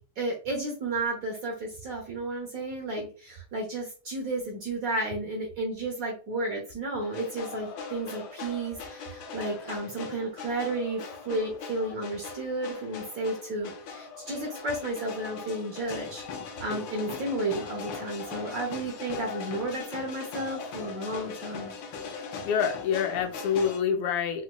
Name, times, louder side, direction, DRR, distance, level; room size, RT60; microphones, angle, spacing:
voice 1, 0.2-16.2 16.6-21.7, right 2 dB, 55° right, -1 dB, 1.1 m, -32 dB
sound 1, 7.0-23.8, left 5 dB, 70° left, 1.4 m, -40 dB
voice 2, 22.4-24.4, left 7 dB, 85° left, 6 dB, 1.6 m, -27 dB
4.0 x 2.8 x 2.2 m, 0.37 s
omnidirectional pair, 2.4 m